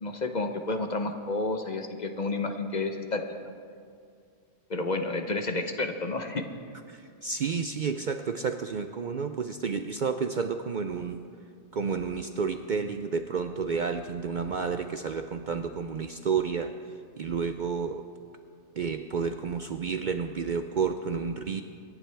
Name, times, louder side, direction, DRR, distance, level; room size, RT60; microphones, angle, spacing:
voice 1, 0.0-3.2 4.7-6.4, left 2 dB, 40° left, 6 dB, 0.9 m, -30 dB
voice 2, 6.9-11.2 11.7-16.8 17.2-18.1 18.8-21.6, right 5 dB, 55° right, 7 dB, 0.6 m, -30 dB
26.0 x 11.0 x 3.4 m, 2.2 s
omnidirectional pair, 1.2 m